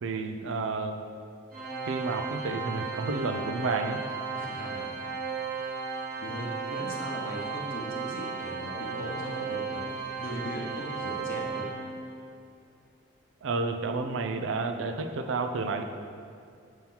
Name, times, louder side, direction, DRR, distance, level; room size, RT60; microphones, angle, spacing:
voice 1, 0.0-1.0 1.9-4.0 13.4-15.8, right 3 dB, 75° right, 7 dB, 0.4 m, -31 dB
Organ, 1.5-12.3, right 5 dB, 45° right, 1.1 m, -35 dB
voice 2, 4.3-4.9 5.5-11.7, equal, 45° left, -2 dB, 0.9 m, -39 dB
7.2 x 2.9 x 5.5 m, 2.4 s
head